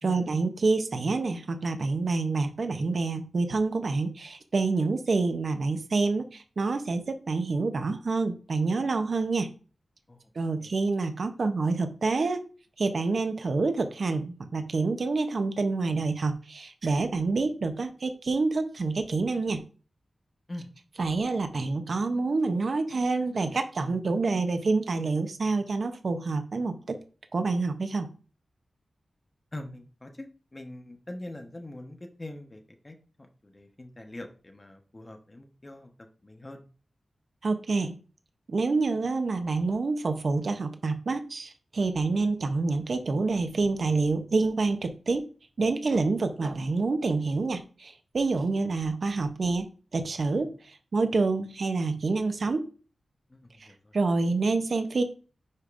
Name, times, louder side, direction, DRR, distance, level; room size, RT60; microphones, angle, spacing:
voice 1, 0.0-9.5 10.4-12.4 12.8-19.6 21.0-27.0 27.3-28.1 37.4-37.9 38.5-45.3 45.6-50.5 50.9-52.7 53.6-53.7 53.9-55.0, right 3 dB, 55° right, 8 dB, 0.8 m, -27 dB
voice 2, 29.5-30.3 30.5-35.9 36.2-36.6 50.3-50.5 53.3-54.0, left 1 dB, 25° left, 4 dB, 1.1 m, -43 dB
9.7 x 5.2 x 2.6 m, 0.38 s
wide cardioid pair, 130°, 0 cm